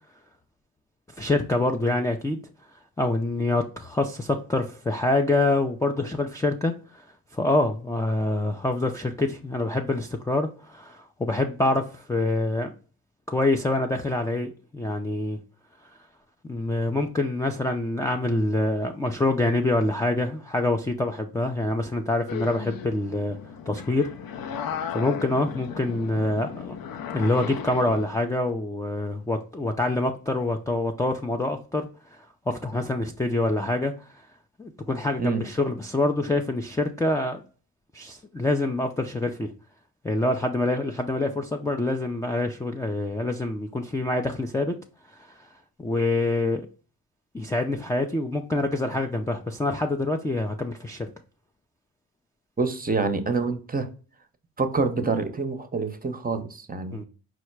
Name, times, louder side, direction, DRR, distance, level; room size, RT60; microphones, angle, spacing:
voice 1, 1.2-2.4 3.0-6.7 7.3-12.7 13.3-15.4 16.5-23.4 23.7-24.1 24.5-26.8 27.1-33.9 34.6-37.4 37.9-39.5 40.0-44.8 45.8-46.6 47.3-51.1 56.9-57.0, left 2 dB, 10° left, 0.4 m, -26 dB
sound 1, 22.3-28.1, left 8 dB, 55° left, 0.6 m, -35 dB
voice 2, 52.6-53.9 54.6-57.0, right 4 dB, 20° right, 0.7 m, -26 dB
4.8 x 2.1 x 4.5 m
supercardioid pair, 60°, 42 cm